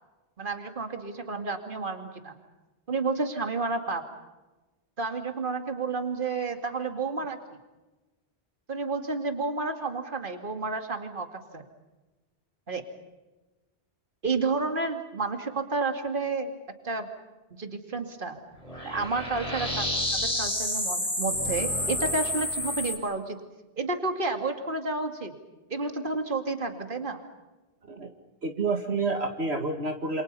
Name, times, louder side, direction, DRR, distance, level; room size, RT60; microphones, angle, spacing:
voice 1, 0.4-2.4 2.9-4.0 5.0-7.4 8.7-11.7 12.7-12.8 14.2-16.5 16.8-17.1 17.5-18.4 18.8-19.9 20.1-23.4 23.8-25.3 25.7-27.2, right 3 dB, 50° right, 6 dB, 2.6 m, -30 dB
sound 1, 18.6-23.0, left 1 dB, 30° left, 4.5 m, -29 dB
voice 2, 28.4-30.2, right 3 dB, 70° right, 4 dB, 2.3 m, -29 dB
28.5 x 27.5 x 5.5 m, 1.1 s
omnidirectional pair, 1.1 m